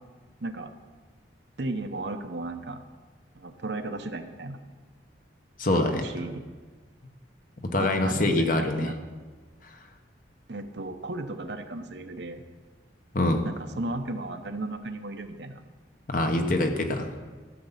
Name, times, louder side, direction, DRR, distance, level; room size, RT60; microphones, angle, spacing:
voice 1, 1.6-2.8 3.4-4.6 6.0-6.4 7.8-9.0 10.5-12.4 13.4-15.6, right 2 dB, 65° right, 7 dB, 0.9 m, -35 dB
voice 2, 5.6-6.0 7.7-8.9 9.6-9.7 13.1-13.5 16.1-17.1, left 1 dB, 45° left, 5 dB, 1.1 m, -24 dB
14.0 x 8.0 x 5.7 m, 1.4 s
head